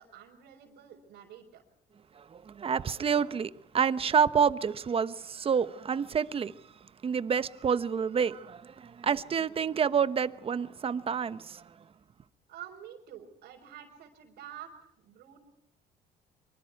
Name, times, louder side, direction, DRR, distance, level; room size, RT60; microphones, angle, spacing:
voice 1, 0.0-1.6 12.5-15.4, right 10 dB, 80° right, -4 dB, 4.4 m, -48 dB
voice 2, 2.2-6.5 7.0-11.6, right 6 dB, 35° right, 14 dB, 0.9 m, -28 dB
24.5 x 24.5 x 4.6 m, 0.77 s
cardioid pair, 110°, 17 cm